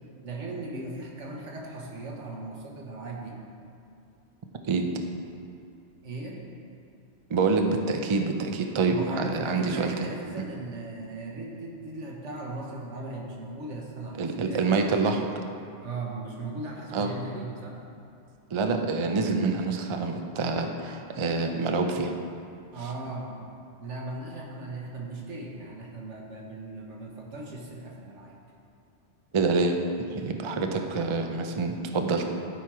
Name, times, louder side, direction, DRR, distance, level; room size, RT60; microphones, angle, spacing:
voice 1, 0.2-3.4 6.0-6.4 8.9-14.6 15.8-17.8 22.7-23.5 23.8-28.4, right 2 dB, 70° right, -2 dB, 1.5 m, -38 dB
voice 2, 7.3-10.1 14.2-15.3 16.9-17.1 18.5-22.1 29.3-29.8 30.1-32.2, right 4 dB, 45° right, 4 dB, 0.4 m, -26 dB
12.0 x 4.6 x 4.7 m, 2.5 s
omnidirectional pair, 1.2 m